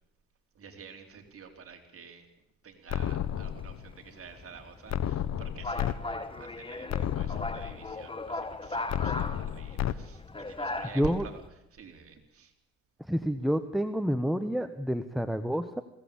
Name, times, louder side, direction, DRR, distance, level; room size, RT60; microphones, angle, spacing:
voice 1, 0.5-2.3 2.6-11.4 11.7-12.5, right 6 dB, 50° right, 4 dB, 4.1 m, -48 dB
sound 1, 2.9-3.9 4.9-5.9 6.4-6.5 6.9-7.9 8.9-9.9, left 10 dB, 60° left, 1.1 m, -32 dB
sound 2, 3.0-11.5, left 2 dB, 15° left, 1.6 m, -39 dB
voice 2, 10.9-11.2 13.1-15.8, equal, ahead, 9 dB, 1.2 m, -28 dB
22.0 x 17.5 x 8.7 m, 0.78 s
cardioid pair, 90°, 30 cm